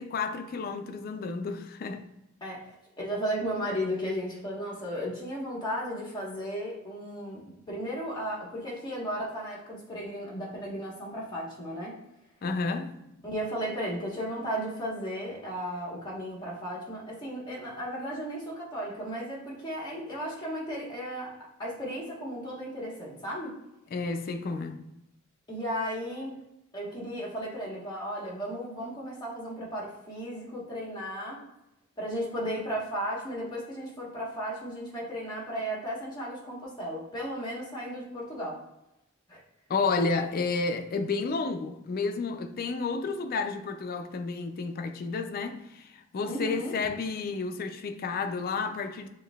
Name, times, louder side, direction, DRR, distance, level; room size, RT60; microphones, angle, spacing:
voice 1, 0.0-2.0 12.4-13.1 23.9-24.8 39.7-49.1, left 4 dB, 45° left, 0.4 m, -31 dB
voice 2, 2.4-12.0 13.2-21.3 21.6-23.6 25.5-26.3 26.7-31.4 32.0-38.6 39.3-39.4 46.2-46.8, equal, 20° left, 1.3 m, -35 dB
6.7 x 2.6 x 2.3 m
head